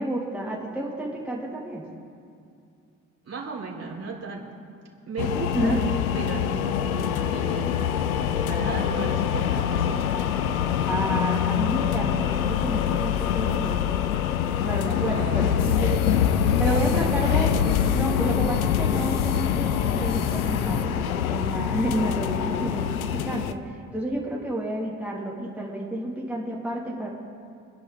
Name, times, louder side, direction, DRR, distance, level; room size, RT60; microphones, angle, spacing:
voice 1, 0.0-1.9 5.5-5.9 10.8-13.8 14.6-20.9 21.3-27.1, right 1 dB, 5° right, -5 dB, 3.3 m, -30 dB
voice 2, 3.2-4.5 5.1-5.8 6.1-10.1 15.1-15.5 16.6-17.1, right 4 dB, 35° right, -4 dB, 3.9 m, -35 dB
sound 1, 5.2-23.5, left 9 dB, 85° left, 0.6 m, -25 dB
sound 2, 15.6-20.8, left 7 dB, 50° left, 1.0 m, -30 dB
26.5 x 10.5 x 3.5 m, 2.4 s
figure-of-eight pair, 40°, 41 cm